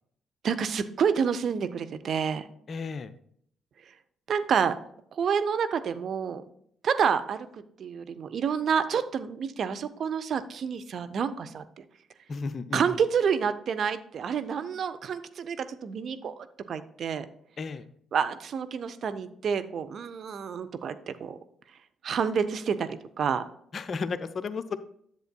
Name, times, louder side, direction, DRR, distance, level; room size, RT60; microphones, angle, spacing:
voice 1, 0.4-2.4 4.3-4.7 5.1-6.4 6.8-11.8 12.7-17.2 18.1-21.4 22.0-23.4, right 7 dB, 50° right, 10 dB, 0.6 m, -29 dB
voice 2, 2.7-3.1 12.3-13.0 17.6-17.9 23.7-24.8, left 4 dB, 45° left, 13 dB, 0.5 m, -33 dB
10.5 x 7.5 x 2.2 m, 0.67 s
figure-of-eight pair, 45°, 0 cm